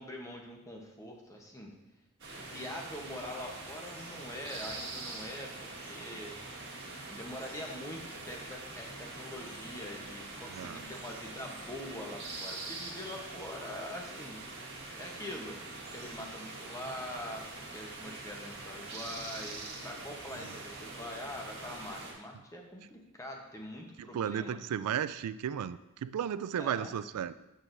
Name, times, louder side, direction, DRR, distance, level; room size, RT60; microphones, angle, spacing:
voice 1, 0.0-1.7 2.4-6.3 7.1-14.4 15.0-15.6 15.9-24.6 26.6-26.9, left 1 dB, 15° left, 1 dB, 0.9 m, -44 dB
sound 1, 2.2-22.1, right 2 dB, 55° right, 1.6 m, -44 dB
voice 2, 10.5-10.8 24.1-27.3, right 8 dB, 85° right, 14 dB, 0.3 m, -34 dB
7.6 x 6.4 x 2.6 m, 0.92 s
head